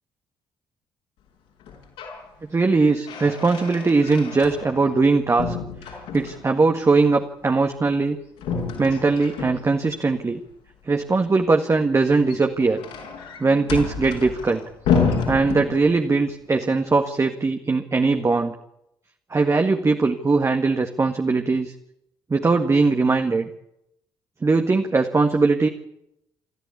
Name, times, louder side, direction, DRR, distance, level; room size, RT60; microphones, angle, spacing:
sound 1, 1.6-2.2 2.6-5.1 5.4-6.6 8.4-10.0 12.0-16.2, left 6 dB, 65° left, 5.5 m, -29 dB
voice 1, 2.5-5.6 5.8-8.2 8.8-10.4 10.9-12.8 13.4-14.6 15.3-18.5 19.3-21.7 22.3-23.5 24.4-25.7, right 3 dB, 25° right, 5 dB, 1.8 m, -20 dB
26.0 x 14.5 x 8.5 m, 0.80 s
figure-of-eight pair, 45°, 11 cm